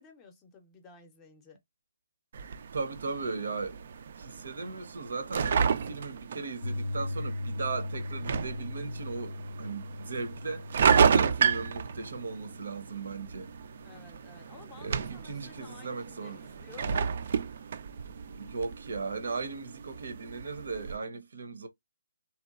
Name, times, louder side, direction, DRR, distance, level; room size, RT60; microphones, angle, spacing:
voice 1, 0.0-1.6 13.8-17.1, left 4 dB, 20° left, 0.6 m, -53 dB
sound 1, 2.3-21.0, right 6 dB, 50° right, 0.3 m, -32 dB
voice 2, 2.7-3.8 4.1-13.5 14.8-16.4 16.8-16.9 18.3-21.7, right 4 dB, 70° right, 0.7 m, -37 dB
Piano, 6.6-14.7, left 2 dB, 80° left, 0.3 m, -39 dB
2.8 x 2.2 x 2.3 m
hypercardioid pair, 155°, 0 cm